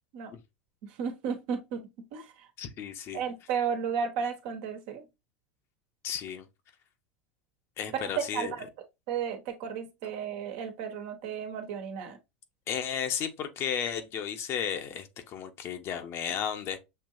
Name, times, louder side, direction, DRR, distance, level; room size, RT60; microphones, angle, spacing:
voice 1, 0.8-2.5 3.1-5.0 7.9-8.7 9.1-12.2, right 7 dB, 65° right, 1.3 m, -33 dB
voice 2, 2.6-3.2 6.0-6.5 7.8-8.5 12.7-16.8, left 8 dB, 45° left, 1.0 m, -34 dB
6.7 x 2.8 x 2.6 m
hypercardioid pair, 100°, 6 cm